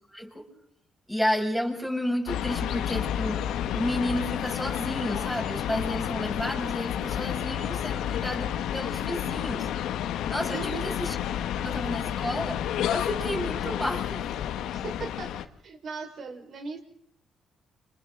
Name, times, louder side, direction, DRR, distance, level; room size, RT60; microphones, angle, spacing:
voice 1, 0.1-0.5 1.1-3.5 3.7-9.7 10.3-11.2 11.6-12.6 12.9-14.3, equal, ahead, 1 dB, 6.2 m, -31 dB
sound 1, 2.3-15.5, left 10 dB, 85° left, 1.4 m, -30 dB
voice 2, 10.5-10.9 14.7-15.3 15.6-16.8, right 4 dB, 60° right, 5 dB, 4.7 m, -38 dB
30.0 x 26.0 x 3.9 m, 0.72 s
cardioid pair, 90°, 0 cm